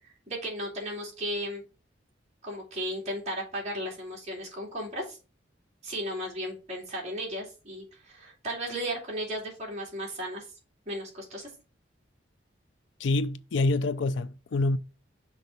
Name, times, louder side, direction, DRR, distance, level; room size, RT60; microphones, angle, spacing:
voice 1, 0.3-1.6 2.4-5.2 5.8-10.4 10.9-11.5, equal, 35° right, 2.7 m, -35 dB
voice 2, 13.0-14.8, left 2 dB, 85° left, 0.5 m, -26 dB
6.0 x 3.8 x 5.3 m
head